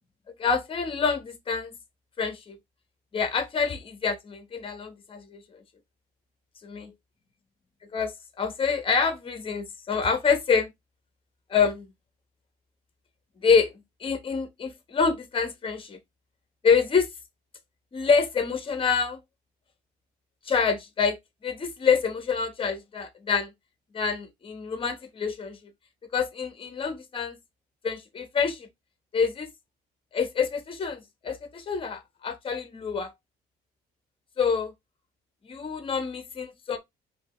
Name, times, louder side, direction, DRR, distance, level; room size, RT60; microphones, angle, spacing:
voice 1, 0.4-1.8 2.2-2.6 3.1-5.6 6.6-6.9 7.9-10.7 11.5-11.9 13.4-13.7 14.0-16.0 16.6-17.1 17.9-19.2 20.4-21.2 21.4-23.5 23.9-25.6 26.1-27.4 27.8-28.7 29.1-29.5 30.1-33.1 34.4-34.7 35.4-36.8, left 5 dB, 30° left, 1.2 m, -26 dB
5.3 x 2.9 x 3.1 m
cardioid pair, 110°, 17 cm